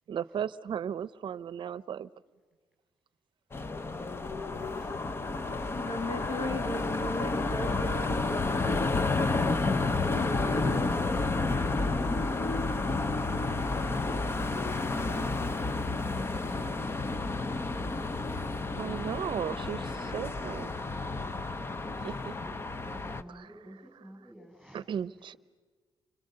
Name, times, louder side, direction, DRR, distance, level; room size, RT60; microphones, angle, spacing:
voice 1, 0.1-2.1 18.8-20.7 22.0-22.3 24.7-25.4, right 8 dB, 60° right, 18 dB, 0.7 m, -35 dB
sound 1, 3.5-23.2, left 3 dB, 25° left, 0.8 m, -31 dB
voice 2, 4.7-5.1 5.4-7.8 22.8-24.9 25.1-25.4, right 1 dB, 5° left, 2 dB, 8.0 m, -51 dB
voice 3, 5.7-9.0 10.0-11.1, left 1 dB, 60° left, 4 dB, 3.4 m, -37 dB
29.5 x 26.0 x 6.7 m, 1.5 s
cardioid pair, 120°, 9 cm